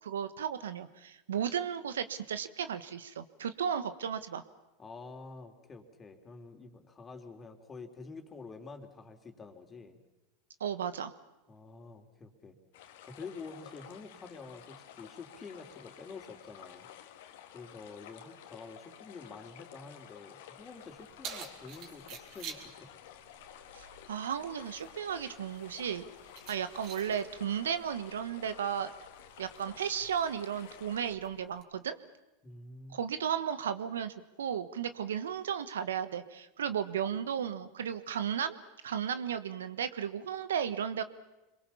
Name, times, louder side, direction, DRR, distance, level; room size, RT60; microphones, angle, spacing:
voice 1, 0.0-4.4 10.6-11.1 23.7-26.0 26.5-28.9 29.4-32.0 32.9-38.6 38.8-41.0, right 8 dB, 85° right, 12 dB, 1.3 m, -34 dB
voice 2, 4.8-10.0 11.5-12.6 13.1-16.9 17.5-22.9 32.4-33.0, left 4 dB, 25° left, 5 dB, 3.5 m, -48 dB
sound 1, 12.7-31.2, left 10 dB, 70° left, 2.0 m, -52 dB
Keys jangling, 20.6-31.6, right 6 dB, 55° right, 3.9 m, -51 dB
26.5 x 22.5 x 7.1 m, 0.99 s
hypercardioid pair, 100°, 0 cm